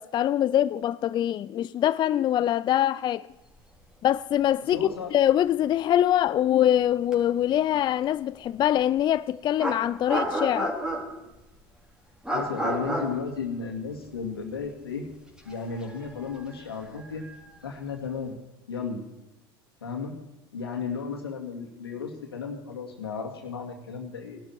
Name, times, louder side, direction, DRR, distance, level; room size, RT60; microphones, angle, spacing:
voice 1, 0.0-3.3 4.0-10.8, left 11 dB, 40° left, 0.4 m, -24 dB
sound 1, 4.4-4.5 4.8-4.9 7.1-7.2 9.0-9.1 9.6-11.3 12.2-14.2 14.5-14.6 15.4-17.7, right 1 dB, 5° right, 3.7 m, -31 dB
voice 2, 4.7-5.1 12.3-15.0 15.4-17.3 17.6-18.3 18.7-19.0 19.8-20.1 20.5-24.4, left 5 dB, 90° left, 2.4 m, -34 dB
18.5 x 12.0 x 4.6 m
hypercardioid pair, 75°, 12 cm